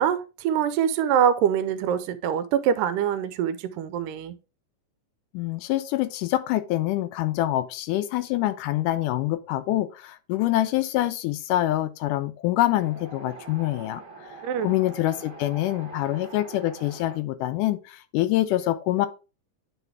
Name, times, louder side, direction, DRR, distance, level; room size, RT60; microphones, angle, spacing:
voice 1, 0.0-4.3 14.4-14.7, right 9 dB, 80° right, 2.1 m, -24 dB
voice 2, 5.3-14.0 14.6-19.1, left 15 dB, 80° left, 2.0 m, -25 dB
Wind, 12.6-17.2, right 3 dB, 35° right, 1.3 m, -43 dB
10.0 x 4.0 x 3.4 m
omnidirectional pair, 4.0 m